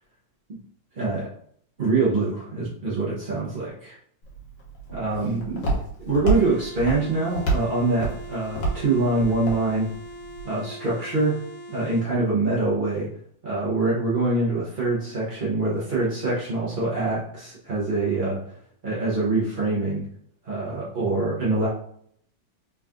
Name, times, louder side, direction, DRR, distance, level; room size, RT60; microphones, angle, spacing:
voice 1, 0.9-1.3 1.8-4.0 4.9-5.7 6.0-9.9 10.4-11.4 11.7-13.1 13.4-18.4 18.8-20.0 20.4-21.7, right 3 dB, 45° right, -8 dB, 0.6 m, -24 dB
Walk footsteps, 4.2-10.4, right 3 dB, 85° left, 1.9 m, -29 dB
sound 1, 6.3-12.1, equal, 85° right, 0.6 m, -41 dB
4.0 x 3.5 x 2.4 m, 0.65 s
omnidirectional pair, 2.1 m